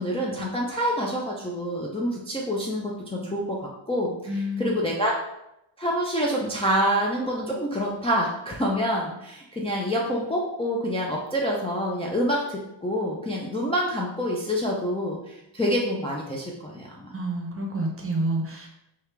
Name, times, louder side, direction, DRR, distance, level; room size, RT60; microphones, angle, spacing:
voice 1, 0.0-5.1 5.8-17.1, equal, 10° left, -4 dB, 0.4 m, -27 dB
voice 2, 4.3-5.0 17.1-18.7, right 1 dB, 25° right, 0 dB, 0.7 m, -29 dB
4.7 x 2.4 x 3.3 m, 0.85 s
wide cardioid pair, 130°, 49 cm